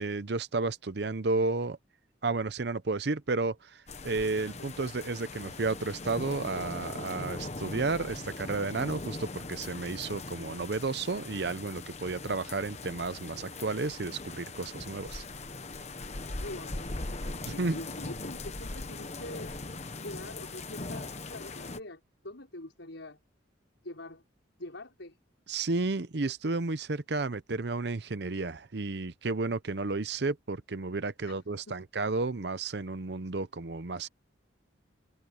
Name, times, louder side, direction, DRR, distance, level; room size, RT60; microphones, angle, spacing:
voice 1, 0.0-1.8 2.2-15.2 17.4-17.8 25.5-34.1, right 3 dB, 60° right, 0.7 m, -32 dB
sound 1, 3.9-21.8, left 2 dB, 35° left, 1.1 m, -40 dB
voice 2, 4.6-4.9 7.9-8.0 16.3-17.0 17.5-19.5 20.0-23.2 23.8-24.2 24.6-25.2 31.2-31.4 31.7-31.8, left 1 dB, 80° left, 5.1 m, -44 dB
head